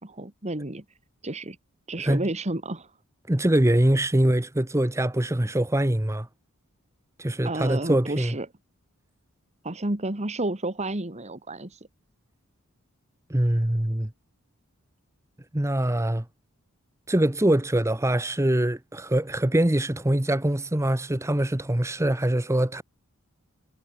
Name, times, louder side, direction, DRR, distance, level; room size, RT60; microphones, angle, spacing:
voice 1, 0.0-0.8 1.2-1.6 1.9-2.9 7.4-8.5 9.6-11.8, right 2 dB, 30° right, 2.0 m, -31 dB
voice 2, 3.3-6.3 7.2-8.3 13.3-14.1 15.5-16.2 17.1-22.8, right 1 dB, 15° right, 0.9 m, -23 dB
head